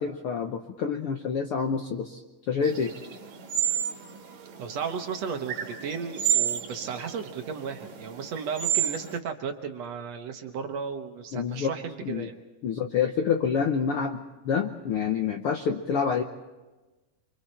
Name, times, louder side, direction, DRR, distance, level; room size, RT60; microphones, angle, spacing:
voice 1, 0.0-2.2 2.5-2.9 11.3-11.7 12.0-12.3 12.6-16.2, left 6 dB, 70° left, 5 dB, 1.3 m, -27 dB
sound 1, 2.6-9.2, right 10 dB, 90° right, 3.4 m, -31 dB
voice 2, 4.6-12.3, right 6 dB, 60° right, 6 dB, 2.1 m, -34 dB
29.5 x 24.5 x 4.4 m, 1.1 s
omnidirectional pair, 3.7 m